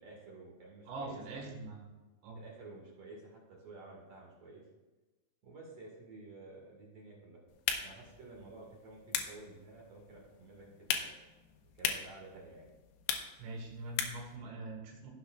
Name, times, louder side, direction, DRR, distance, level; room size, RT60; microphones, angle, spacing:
voice 1, 0.0-1.6 2.3-4.6 5.4-7.4 7.8-11.1 11.7-12.7, right 2 dB, 50° right, -2 dB, 2.0 m, -52 dB
voice 2, 0.9-1.8 2.2-2.4 13.4-15.1, right 2 dB, 85° right, 0 dB, 4.3 m, -43 dB
sound 1, 7.5-14.4, left 8 dB, 85° left, 2.3 m, -40 dB
16.0 x 7.4 x 2.5 m, 1.2 s
omnidirectional pair, 5.6 m